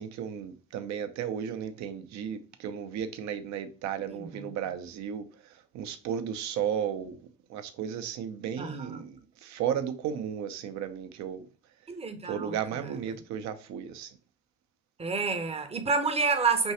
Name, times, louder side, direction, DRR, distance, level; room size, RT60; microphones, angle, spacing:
voice 1, 0.0-11.9 12.2-14.2, right 8 dB, 45° right, 0.7 m, -34 dB
voice 2, 8.6-9.0 11.9-12.5 15.0-16.7, right 4 dB, 15° right, 0.8 m, -28 dB
5.3 x 3.1 x 2.8 m
figure-of-eight pair, 55°, 38 cm